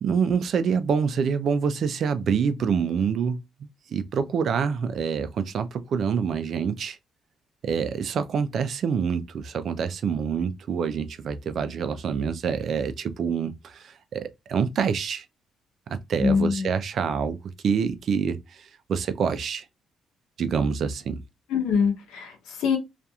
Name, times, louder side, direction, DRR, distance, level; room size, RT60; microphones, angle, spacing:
voice 1, 0.0-7.0 7.6-15.2 15.9-17.4 17.6-19.6 20.4-21.2, right 6 dB, 60° right, 0.4 m, -26 dB
voice 2, 16.2-16.7 21.5-22.8, left 6 dB, 85° left, 0.8 m, -24 dB
2.8 x 2.5 x 2.2 m
cardioid pair, 90°, 0 cm